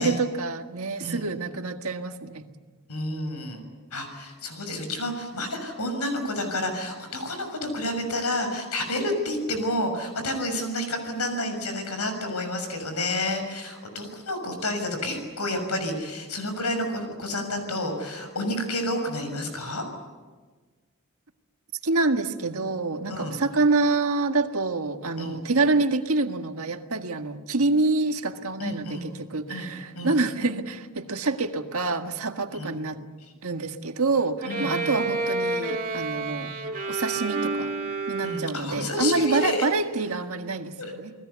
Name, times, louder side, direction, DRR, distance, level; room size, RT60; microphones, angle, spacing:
voice 1, 0.0-2.5 21.8-33.1 33.4-36.6 36.9-37.7 38.1-41.1, right 3 dB, 70° right, 6 dB, 1.7 m, -26 dB
voice 2, 2.9-3.6 3.9-19.8 23.1-23.4 25.2-25.4 28.6-29.0 29.5-30.2 32.5-32.7 34.5-34.9 38.2-39.6 40.8-40.9, left 1 dB, 90° left, 6 dB, 6.5 m, -30 dB
Bowed string instrument, 34.4-38.8, right 3 dB, 40° right, 2.5 m, -30 dB
29.0 x 20.0 x 8.3 m, 1.3 s
head